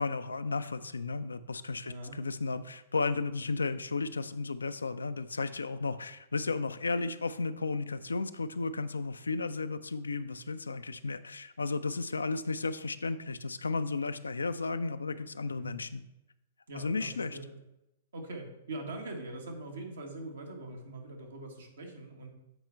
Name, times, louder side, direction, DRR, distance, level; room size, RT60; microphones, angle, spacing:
voice 1, 0.0-16.0 16.7-17.4, left 3 dB, 80° left, 12 dB, 0.4 m, -34 dB
voice 2, 1.8-2.2 15.6-15.7 16.7-17.6 18.1-22.3, right 2 dB, 70° right, 2 dB, 1.4 m, -42 dB
8.0 x 4.4 x 4.5 m, 0.90 s
figure-of-eight pair, 110°, 0 cm